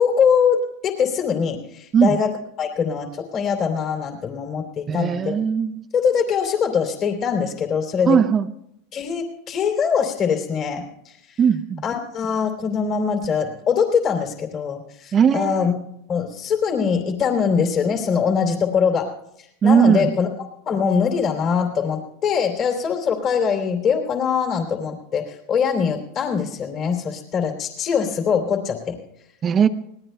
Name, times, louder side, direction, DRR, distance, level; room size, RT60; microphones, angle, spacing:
voice 1, 0.0-5.4 5.9-8.2 8.9-11.4 11.8-15.7 16.1-19.1 19.6-20.3 20.6-29.0, left 6 dB, 40° left, 3 dB, 3.0 m, -22 dB
voice 2, 4.9-5.9 8.0-8.5 11.4-11.8 15.1-15.7 19.6-20.2 29.4-29.7, right 7 dB, 30° right, 7 dB, 0.6 m, -18 dB
25.5 x 19.5 x 2.3 m, 0.77 s
supercardioid pair, 120°, 0 cm